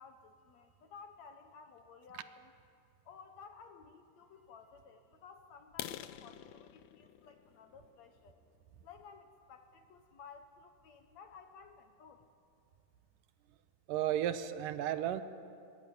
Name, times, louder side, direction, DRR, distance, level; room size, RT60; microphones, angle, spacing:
voice 1, 0.0-2.5 3.1-8.4 8.8-12.3, left 5 dB, 65° left, 7 dB, 2.0 m, -55 dB
sound 1, 5.7-9.4 10.0-10.2 10.6-10.7 11.1-11.3 11.6-11.7 12.2-12.3 12.5-13.0, left 12 dB, 85° left, 1.5 m, -48 dB
voice 2, 13.9-15.2, right 11 dB, 75° right, 11 dB, 2.4 m, -33 dB
22.5 x 22.0 x 9.5 m, 2.4 s
omnidirectional pair, 4.0 m